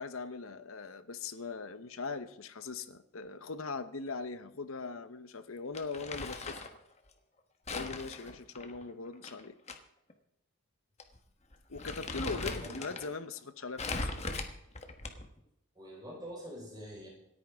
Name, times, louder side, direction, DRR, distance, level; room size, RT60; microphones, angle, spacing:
voice 1, 0.0-6.6 7.7-9.6 11.7-14.1, left 4 dB, 75° left, 11 dB, 1.0 m, -40 dB
Crumpling crinkling, 5.7-6.8 7.7-9.8 10.1-10.2 11.0-11.2 11.5-13.1 13.8-15.4, left 3 dB, 30° left, 1.2 m, -39 dB
voice 2, 12.4-13.0 15.7-17.1, equal, 20° right, -2 dB, 5.0 m, -45 dB
27.0 x 9.2 x 3.6 m, 0.80 s
head